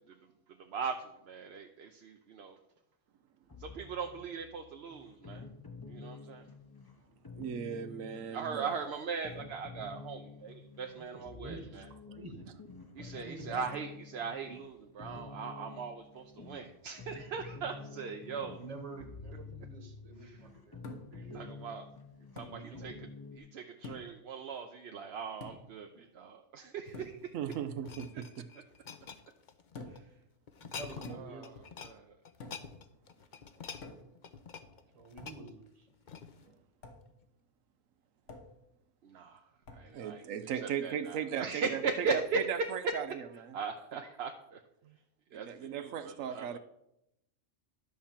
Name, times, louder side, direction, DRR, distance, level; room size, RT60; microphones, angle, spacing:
voice 1, 0.6-2.6 3.6-5.4 5.9-6.5 8.3-11.8 13.0-18.6 20.2-20.4 21.1-21.8 22.4-22.5 22.8-22.9 23.3-27.2 29.9-30.0 31.2-31.5 31.8-32.1 33.7-33.8 39.0-39.4 39.7-40.2 40.6-42.4 43.5-44.6 45.3-46.6, right 5 dB, 60° right, 4 dB, 0.9 m, -39 dB
sound 1, 3.5-23.4, left 4 dB, 20° left, 0.8 m, -50 dB
voice 2, 7.4-8.7 27.3-28.4 36.5-36.6 39.9-42.2 42.5-43.5 44.8-45.0 45.3-46.6, right 8 dB, 85° right, 10 dB, 1.1 m, -37 dB
voice 3, 10.9-12.5 13.0-13.6 17.3-20.8 21.1-21.7 22.4-23.0 25.8-26.1 26.9-27.1 30.6-31.4 34.9-35.9, right 3 dB, 30° right, 5 dB, 1.3 m, -49 dB
sound 2, 20.8-21.3 22.4-22.6 23.8-24.2 25.4-25.8 26.9-27.2 29.7-30.1 31.0-31.5 32.4-32.8 33.8-34.2 35.2-35.4 36.8-37.1 38.3-38.6 39.6-39.9, left 2 dB, 70° left, 1.4 m, -48 dB
sound 3, 26.8-30.0 30.5-31.2 31.4-31.9 32.2-36.5 37.1-37.2, left 6 dB, 45° left, 0.7 m, -48 dB
11.5 x 4.3 x 7.2 m, 0.84 s
omnidirectional pair, 1.3 m